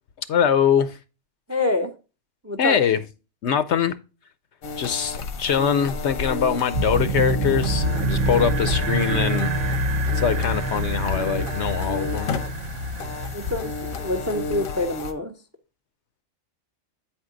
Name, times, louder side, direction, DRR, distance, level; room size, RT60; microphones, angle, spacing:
voice 1, 0.3-1.0 2.6-3.0 3.4-3.9 4.8-12.4, left 8 dB, 65° left, 0.8 m, -23 dB
voice 2, 1.5-1.9 2.4-2.8 13.3-15.3, left 2 dB, 15° right, 0.5 m, -26 dB
sound 1, 4.6-15.1, left 4 dB, 85° left, 1.3 m, -32 dB
sound 2, 6.7-14.8, right 1 dB, 65° right, 1.0 m, -26 dB
8.9 x 4.5 x 3.7 m
omnidirectional pair, 1.4 m